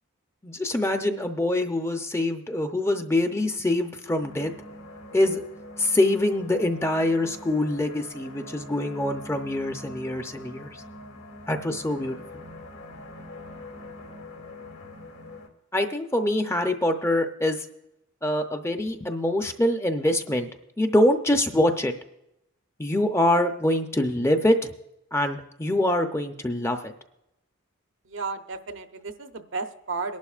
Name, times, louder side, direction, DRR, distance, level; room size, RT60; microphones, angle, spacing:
voice 1, 0.4-4.5 5.1-5.4 5.8-10.8 11.5-12.2 15.7-17.7 18.2-20.5 20.8-21.9 22.8-24.7 25.1-26.9, left 1 dB, 10° left, 6 dB, 0.6 m, -24 dB
sound 1, 4.2-15.5, left 1 dB, 80° left, 2.7 m, -44 dB
voice 2, 28.0-30.2, right 4 dB, 65° right, 7 dB, 0.7 m, -33 dB
23.0 x 11.5 x 2.4 m, 0.85 s
head